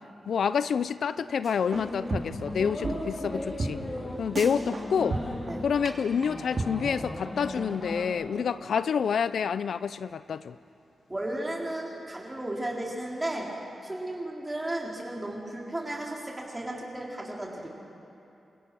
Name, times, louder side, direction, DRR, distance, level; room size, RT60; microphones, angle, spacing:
voice 1, 0.3-3.8 4.2-5.2 5.6-10.5, left 7 dB, 75° left, 14 dB, 0.5 m, -28 dB
sound 1, 1.4-2.5 2.8-2.9 3.2-3.3 3.6-3.7 4.0-4.1 4.3-4.8 5.1-5.5 5.8-5.9 6.2-6.3 6.6-6.7, right 3 dB, 40° right, 2.9 m, -31 dB
sound 2, 1.7-8.1, left 1 dB, 20° left, 3.0 m, -37 dB
voice 2, 11.1-13.5 13.8-17.8, right 1 dB, 15° right, -2 dB, 4.1 m, -34 dB
28.5 x 25.5 x 6.3 m, 2.8 s
wide cardioid pair, 150°, 0 cm